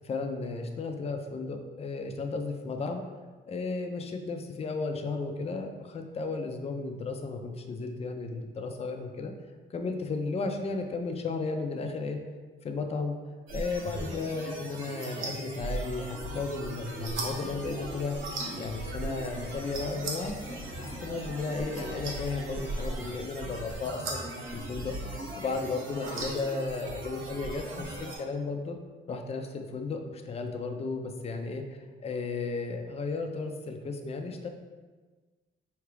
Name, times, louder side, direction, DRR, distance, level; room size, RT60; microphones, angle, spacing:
voice 1, 0.0-3.0 3.5-9.3 9.7-12.2 12.6-13.2 13.5-18.2 18.6-20.3 20.8-24.3 24.5-28.8 29.1-31.6 32.0-34.5, left 3 dB, 30° left, 5 dB, 0.5 m, -34 dB
sound 1, 13.5-28.2, right 2 dB, 80° right, 1.0 m, -38 dB
sound 2, 18.0-23.1, left 2 dB, 85° left, 0.8 m, -50 dB
4.6 x 2.8 x 3.3 m, 1.4 s
cardioid pair, 90°, 20 cm